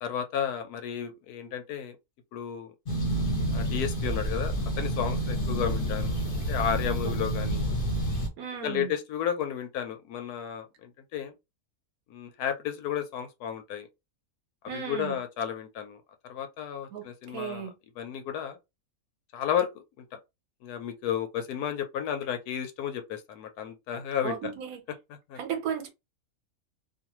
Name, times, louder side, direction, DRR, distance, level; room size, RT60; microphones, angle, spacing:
voice 1, 0.0-2.0 2.3-2.7 3.5-6.1 6.5-7.6 8.6-11.3 12.1-13.9 14.6-16.0 16.2-17.7 18.0-18.6 19.3-20.0 20.6-24.5 25.3-25.4, left 9 dB, 90° left, 1.1 m, -33 dB
sound 1, 2.8-8.3, right 1 dB, 45° left, 0.9 m, -29 dB
voice 2, 8.4-8.9 14.7-15.2 16.9-17.7 24.2-24.8 25.4-25.9, right 8 dB, 75° right, 1.2 m, -35 dB
2.6 x 2.5 x 2.9 m
omnidirectional pair, 1.6 m